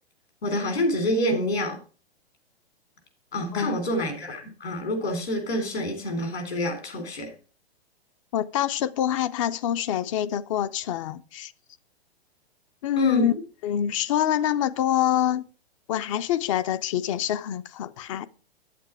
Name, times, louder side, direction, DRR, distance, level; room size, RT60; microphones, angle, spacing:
voice 1, 0.4-1.8 3.3-7.3 13.0-13.3, equal, 80° left, 3.8 m, -27 dB
voice 2, 8.3-11.5 12.8-13.3 13.6-15.5 15.9-18.3, left 11 dB, 30° left, 0.4 m, -25 dB
9.3 x 8.4 x 4.6 m
figure-of-eight pair, 115°, 32 cm